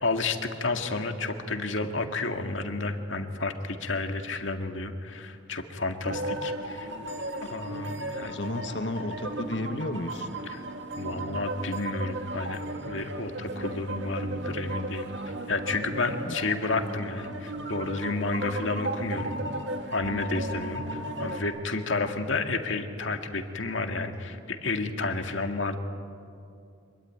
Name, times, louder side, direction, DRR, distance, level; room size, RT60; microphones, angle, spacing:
voice 1, 0.0-6.9 7.4-8.4 10.5-10.6 11.0-12.6 12.9-15.2 15.5-19.4 19.9-25.8, left 3 dB, 80° left, 5 dB, 2.0 m, -31 dB
sound 1, 6.0-21.4, right 1 dB, 65° right, 2.2 m, -35 dB
voice 2, 8.3-10.3 16.3-16.4, left 1 dB, 65° left, 8 dB, 1.5 m, -33 dB
25.5 x 23.0 x 9.5 m, 2.5 s
head